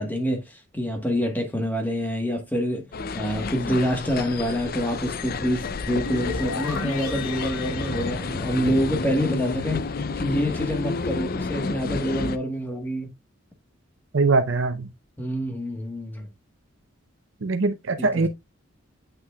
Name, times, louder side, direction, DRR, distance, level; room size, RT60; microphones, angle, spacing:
voice 1, 0.0-2.8 3.1-9.8 10.2-13.1 15.2-16.3 18.0-18.3, equal, 10° left, 1.2 m, -26 dB
sound 1, 2.9-12.4, left 4 dB, 45° left, 0.4 m, -30 dB
sound 2, 5.9-9.1, left 3 dB, 90° left, 1.0 m, -34 dB
voice 2, 14.1-14.9 17.4-18.3, right 3 dB, 65° right, 0.6 m, -22 dB
8.1 x 6.1 x 2.3 m
head